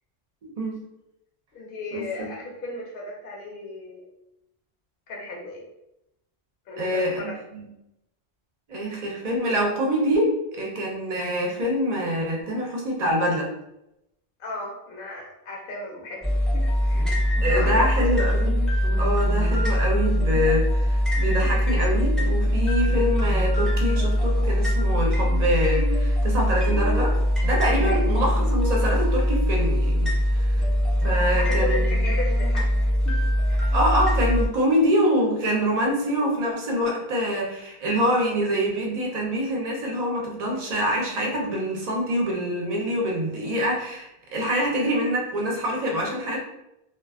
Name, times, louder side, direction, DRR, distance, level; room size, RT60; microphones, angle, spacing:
voice 1, 0.4-0.8 1.9-2.3 6.8-7.7 8.7-13.5 17.4-18.5 19.0-30.6 31.0-32.1 33.7-46.4, equal, 45° right, -1 dB, 0.7 m, -25 dB
voice 2, 1.5-4.0 5.1-5.6 6.7-7.3 14.4-17.1 17.4-18.1 27.8-28.0 31.3-33.2 33.5-33.7, left 2 dB, 65° left, -2 dB, 0.8 m, -35 dB
sound 1, 16.2-34.5, equal, ahead, 0.4 m, -22 dB
2.3 x 2.3 x 2.3 m, 0.86 s
omnidirectional pair, 1.0 m